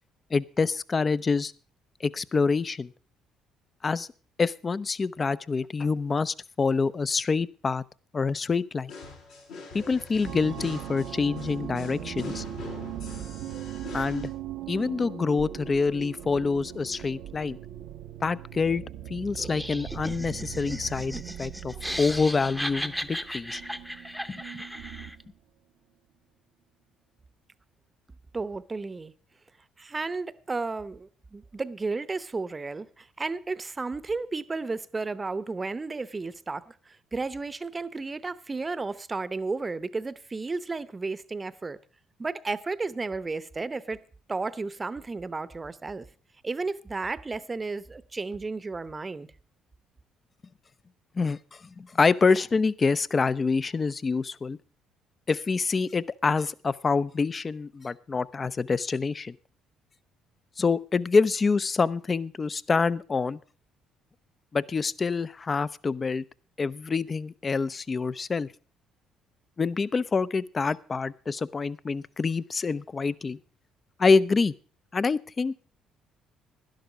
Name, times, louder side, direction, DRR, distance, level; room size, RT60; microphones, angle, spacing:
voice 1, 0.3-1.5 2.0-2.9 3.8-4.1 4.4-7.8 8.1-8.9 9.7-12.4 13.9-14.3 14.7-17.6 18.2-18.8 19.1-23.6 24.3-24.6 51.2-54.6 55.3-59.4 60.6-63.4 64.5-66.2 66.6-68.5 69.6-73.4 74.0-74.5 74.9-75.5, left 4 dB, 35° left, 0.6 m, -26 dB
sound 1, 8.9-14.3, left 3 dB, 80° left, 6.4 m, -44 dB
sound 2, 10.2-25.3, right 11 dB, 70° right, 0.7 m, -40 dB
Laughter, 19.4-25.2, equal, 5° left, 0.8 m, -36 dB
voice 2, 28.3-29.1 29.8-41.8 42.2-44.0 44.3-46.1 46.4-49.3, right 3 dB, 25° right, 0.8 m, -33 dB
11.5 x 11.5 x 5.1 m
hypercardioid pair, 60°, 0 cm